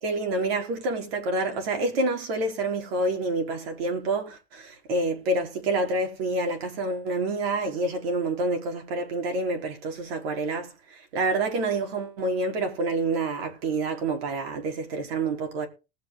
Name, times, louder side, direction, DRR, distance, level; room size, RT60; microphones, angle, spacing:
voice 1, 0.0-15.7, right 2 dB, 85° right, 4.4 m, -28 dB
19.5 x 8.1 x 4.0 m
supercardioid pair, 115°, 29 cm